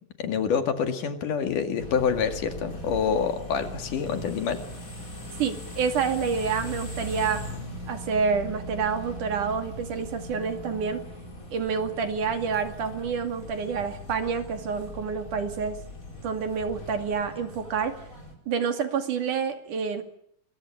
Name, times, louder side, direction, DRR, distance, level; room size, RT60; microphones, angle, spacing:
voice 1, 0.2-4.6, left 6 dB, 75° left, 7 dB, 3.8 m, -27 dB
sound 1, 1.8-18.3, left 1 dB, 25° left, 5.2 m, -40 dB
voice 2, 5.4-7.4 7.9-11.0 11.5-15.8 16.2-18.0 18.5-20.0, right 6 dB, 70° right, 7 dB, 4.0 m, -28 dB
26.0 x 22.5 x 8.8 m, 0.67 s
omnidirectional pair, 3.7 m